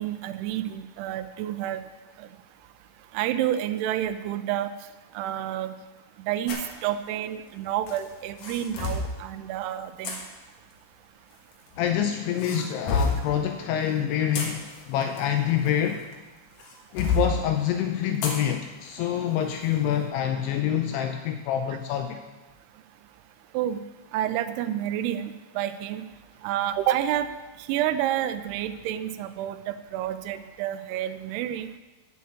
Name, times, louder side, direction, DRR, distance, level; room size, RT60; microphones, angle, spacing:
voice 1, 0.0-1.8 2.2-2.3 3.1-4.7 5.2-5.7 6.3-10.1 23.5-23.8 24.1-26.1 26.4-27.3 27.7-31.7, right 11 dB, 80° right, 10 dB, 2.5 m, -29 dB
sound 1, 6.5-6.7 7.9-9.1 10.0-10.2 11.3-11.9 12.4-13.3 14.1-16.1 16.6-17.3 18.2-18.4 18.9-19.0 19.6-19.8, left 3 dB, 60° left, 2.7 m, -29 dB
voice 2, 11.8-16.1 16.9-22.2, left 9 dB, 80° left, 6 dB, 2.5 m, -26 dB
8.5 x 7.0 x 8.5 m, 1.2 s
omnidirectional pair, 4.9 m